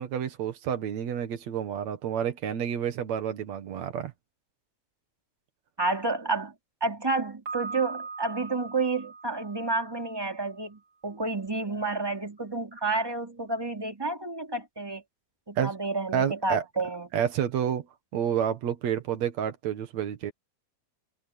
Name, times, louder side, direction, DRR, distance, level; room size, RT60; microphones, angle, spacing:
voice 1, 0.0-4.1 15.6-15.7 16.1-16.6 17.1-17.9 18.1-20.3, right 9 dB, 65° right, 2.7 m, -29 dB
voice 2, 5.8-6.5 6.8-15.0 15.5-17.1, right 3 dB, 10° right, 3.0 m, -30 dB
Piano, 7.5-10.3, right 4 dB, 25° right, 4.3 m, -40 dB
omnidirectional pair, 3.5 m